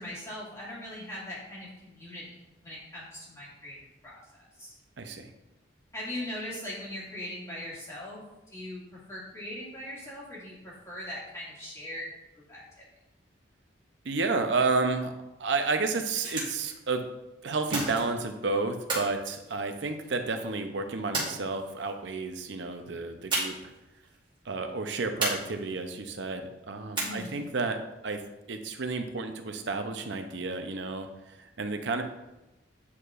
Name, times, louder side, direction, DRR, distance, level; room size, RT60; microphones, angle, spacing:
voice 1, 0.0-2.3 2.6-4.7 5.9-8.8 9.1-12.1 12.5-12.6 27.0-27.4, left 1 dB, 15° left, -7 dB, 2.1 m, -40 dB
voice 2, 5.0-5.3 14.0-15.1 15.4-17.0 17.4-23.7 24.4-28.2 28.5-32.0, right 3 dB, 70° right, 6 dB, 0.6 m, -31 dB
sound 1, 15.9-16.7 17.7-18.3 18.9-20.1 21.1-21.9 23.3-23.8 24.0-24.1 25.2-25.9 26.9-27.5, right 2 dB, 25° right, 1.5 m, -33 dB
8.4 x 4.6 x 2.5 m, 0.99 s
head